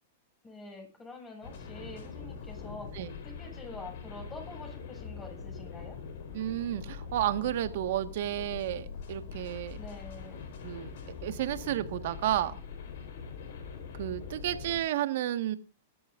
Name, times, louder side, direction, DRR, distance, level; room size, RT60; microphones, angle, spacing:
voice 1, 0.4-3.0 3.2-6.0 9.8-10.4, left 2 dB, 15° left, 2 dB, 7.6 m, -46 dB
sound 1, 1.4-14.8, left 6 dB, 70° left, 4.3 m, -43 dB
voice 2, 6.3-9.8 10.6-10.9 11.2-12.6 14.0-15.6, right 13 dB, 65° right, 10 dB, 1.6 m, -31 dB
21.5 x 12.5 x 2.6 m, 0.34 s
hypercardioid pair, 130°, 0 cm